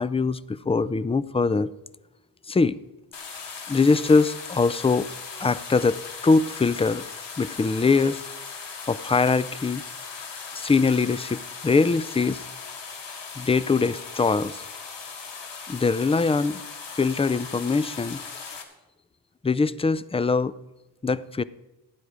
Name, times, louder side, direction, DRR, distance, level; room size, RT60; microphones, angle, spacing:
voice 1, 0.0-1.7 2.5-2.8 3.7-5.1 5.4-7.0 7.4-8.2 8.9-9.8 10.5-12.4 13.4-14.6 15.7-16.6 16.9-18.2 19.4-20.5 21.0-21.4, left 4 dB, 15° left, 0.3 m, -22 dB
sound 1, 3.1-18.6, left 5 dB, 80° left, 2.0 m, -38 dB
16.0 x 9.5 x 5.0 m
wide cardioid pair, 110°, 43 cm